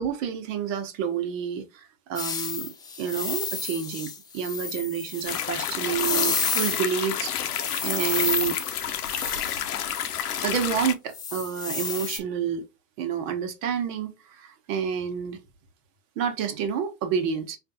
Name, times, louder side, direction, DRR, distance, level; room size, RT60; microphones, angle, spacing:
voice 1, 0.0-8.6 10.4-12.6 13.0-15.4 16.2-17.6, right 8 dB, 60° right, 1.1 m, -29 dB
sound 1, 2.1-7.1 7.5-10.3 11.1-12.2, left 5 dB, 10° left, 0.3 m, -31 dB
sound 2, 5.3-10.9, left 9 dB, 80° left, 0.7 m, -30 dB
4.3 x 2.5 x 2.6 m
hypercardioid pair, 90°, 45 cm